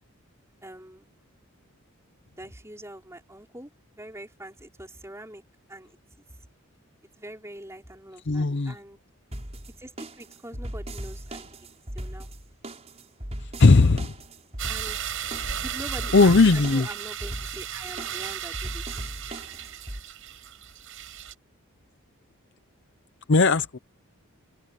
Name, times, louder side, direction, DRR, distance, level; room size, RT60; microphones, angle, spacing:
voice 1, 0.6-1.1 2.4-3.7 4.0-5.4 5.7-6.0 7.2-9.0 9.8-11.5 11.9-12.3 14.7-15.0 15.6-18.8, right 1 dB, 10° right, 5.1 m, -43 dB
voice 2, 8.2-8.7 13.4-14.1 15.4-15.5 16.1-16.9 23.3-23.8, left 3 dB, 50° left, 0.6 m, -18 dB
sound 1, 9.3-20.0, right 1 dB, 30° right, 5.6 m, -38 dB
sound 2, 14.6-21.3, right 9 dB, 60° right, 5.9 m, -35 dB
open air
head